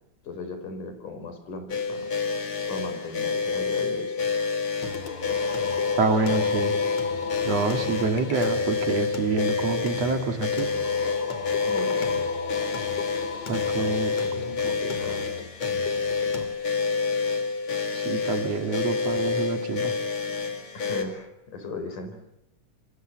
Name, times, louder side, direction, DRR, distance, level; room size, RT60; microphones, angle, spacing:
voice 1, 0.2-2.1 2.7-4.3 11.6-12.2 13.8-15.3 20.7-22.2, left 3 dB, 75° left, 8 dB, 6.1 m, -37 dB
sound 1, 1.7-21.0, left 5 dB, 40° left, 3.1 m, -28 dB
Singing, 4.8-16.5, left 6 dB, 55° left, 3.6 m, -37 dB
voice 2, 6.0-6.8 7.4-10.7 13.5-14.1 14.6-14.7 17.9-19.9, right 4 dB, 55° right, 5 dB, 3.0 m, -27 dB
28.5 x 22.5 x 7.8 m, 0.81 s
omnidirectional pair, 3.7 m